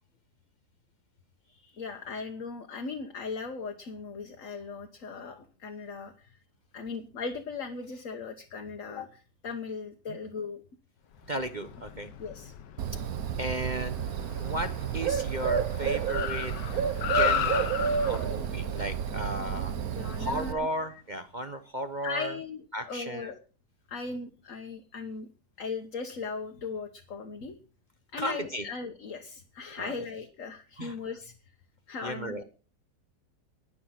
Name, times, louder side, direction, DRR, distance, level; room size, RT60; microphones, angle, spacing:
voice 1, 1.5-6.4 6.7-10.6 12.2-12.5 19.7-21.0 22.0-23.4 23.9-25.3 25.6-27.5 28.1-31.3 31.9-32.4, left 4 dB, 50° left, 4 dB, 1.5 m, -38 dB
Car, 11.2-20.8, left 9 dB, 80° left, 1.5 m, -36 dB
voice 2, 11.3-12.1 13.4-14.0 14.4-16.5 17.1-17.7 18.0-19.7 20.2-22.3 22.7-23.3 28.2-28.6 29.8-30.0 30.8-30.9 32.0-32.4, right 1 dB, 40° right, 7 dB, 0.7 m, -34 dB
Bird, 12.8-20.5, right 7 dB, 60° right, 1.3 m, -30 dB
20.0 x 6.9 x 5.8 m, 0.37 s
omnidirectional pair, 1.9 m